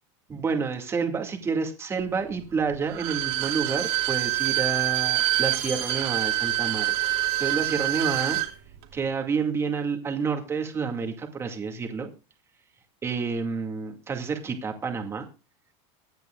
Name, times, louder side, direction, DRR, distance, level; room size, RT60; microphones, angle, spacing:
voice 1, 0.3-6.9 7.4-8.4 8.9-12.1 13.0-15.3, right 5 dB, 15° right, 4 dB, 2.2 m, -29 dB
Bowed string instrument, 2.9-8.5 8.8-8.9, right 16 dB, 60° right, 3.0 m, -26 dB
23.5 x 9.4 x 2.4 m, 0.31 s
supercardioid pair, 150°, 15 cm